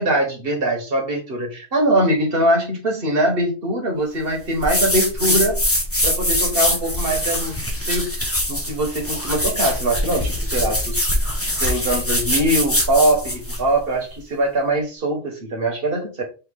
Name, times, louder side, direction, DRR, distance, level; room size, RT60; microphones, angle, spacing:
voice 1, 0.0-5.6 6.0-7.5 7.9-8.1 8.5-11.0 11.6-16.2, right 1 dB, 50° right, 1 dB, 1.5 m, -22 dB
sound 1, 4.6-13.6, left 1 dB, 15° left, 0.8 m, -23 dB
4.7 x 3.2 x 3.5 m, 0.33 s
omnidirectional pair, 1.2 m